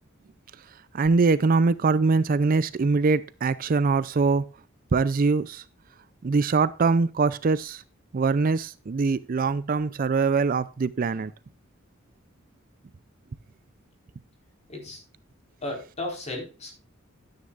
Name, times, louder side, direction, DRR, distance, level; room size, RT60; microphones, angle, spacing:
voice 1, 0.9-4.4 4.9-5.6 6.2-7.8 8.1-11.3, right 4 dB, 45° right, 0.4 m, -23 dB
voice 2, 15.6-16.8, left 2 dB, 35° left, 4.3 m, -34 dB
12.5 x 9.6 x 2.5 m
head